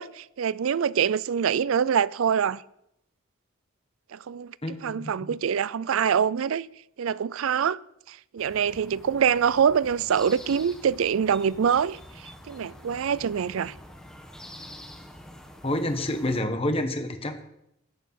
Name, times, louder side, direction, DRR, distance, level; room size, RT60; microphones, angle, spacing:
voice 1, 0.0-2.6 4.1-4.5 4.8-6.7 7.0-7.8 8.1-12.0 12.5-13.7, right 7 dB, 80° right, 0.4 m, -25 dB
voice 2, 4.6-5.4 15.6-17.4, left 1 dB, 30° left, 1.2 m, -28 dB
sound 1, 8.4-16.4, left 1 dB, 5° left, 1.3 m, -46 dB
14.0 x 8.3 x 5.8 m
head